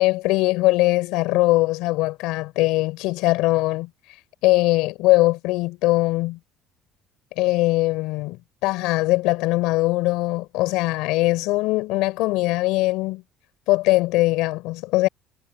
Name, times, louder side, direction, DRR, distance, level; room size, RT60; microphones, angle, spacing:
voice 1, 0.0-3.9 4.4-6.4 7.4-8.4 8.6-13.2 13.7-15.1, left 20 dB, 85° left, 3.5 m, -21 dB
cardioid pair, 170°, 0 cm